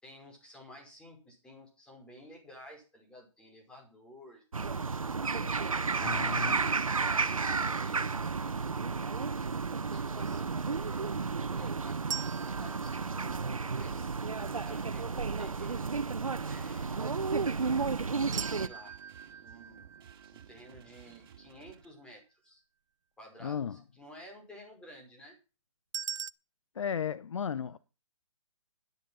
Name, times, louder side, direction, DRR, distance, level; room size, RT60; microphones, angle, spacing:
voice 1, 0.0-4.9 6.0-9.0 9.9-13.2 13.7-16.0 16.5-17.1 18.4-19.0 19.4-19.9 20.3-22.6 23.2-25.3, equal, 5° left, 5.4 m, -53 dB
sound 1, 4.5-18.7, right 4 dB, 90° right, 1.2 m, -32 dB
voice 2, 6.0-6.6 23.4-23.8 26.7-27.8, left 7 dB, 65° left, 1.0 m, -35 dB
sound 2, 12.1-14.2 18.3-21.4 25.9-26.3, right 8 dB, 65° right, 0.7 m, -42 dB
sound 3, 14.5-21.8, right 8 dB, 45° right, 3.3 m, -55 dB
12.5 x 10.5 x 5.7 m
hypercardioid pair, 145°, 17 cm